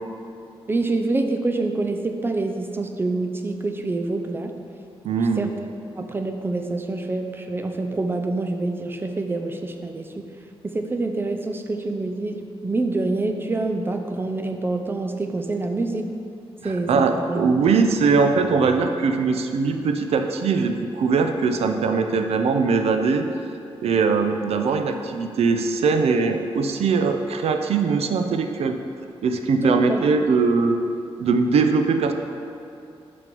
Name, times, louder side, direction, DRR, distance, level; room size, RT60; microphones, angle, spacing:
voice 1, 0.7-4.5 5.4-5.5 6.0-10.3 10.6-16.1 16.6-17.4 29.6-30.0, right 2 dB, 20° right, 5 dB, 0.5 m, -26 dB
voice 2, 5.0-5.5 16.6-23.3 23.8-28.8 29.2-30.8 31.2-32.1, right 4 dB, 90° right, 6 dB, 0.5 m, -21 dB
6.1 x 5.9 x 5.3 m, 2.6 s
wide cardioid pair, 155°, 10 cm